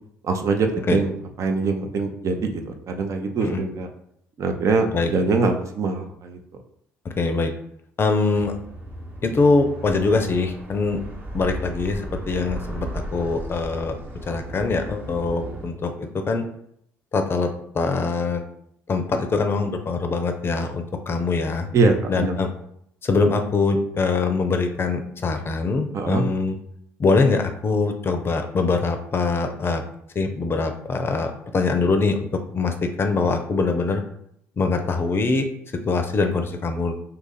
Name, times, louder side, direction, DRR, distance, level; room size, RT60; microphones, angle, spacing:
voice 1, 0.2-1.1 1.4-3.9 4.4-6.4 21.7-22.3 25.9-26.3, right 3 dB, 50° right, 4 dB, 0.6 m, -23 dB
voice 2, 7.2-7.5 8.0-8.5 9.2-11.0 11.3-14.0 14.3-16.4 17.1-17.5 17.7-18.4 18.9-21.7 22.1-22.5 23.0-26.6 27.0-29.8 30.2-34.0 34.6-35.5 35.8-37.0, left 3 dB, 35° left, 6 dB, 0.5 m, -23 dB
sound 1, 8.3-15.7, right 1 dB, 30° right, 1.0 m, -35 dB
2.7 x 2.5 x 3.9 m, 0.71 s
hypercardioid pair, 55°, 7 cm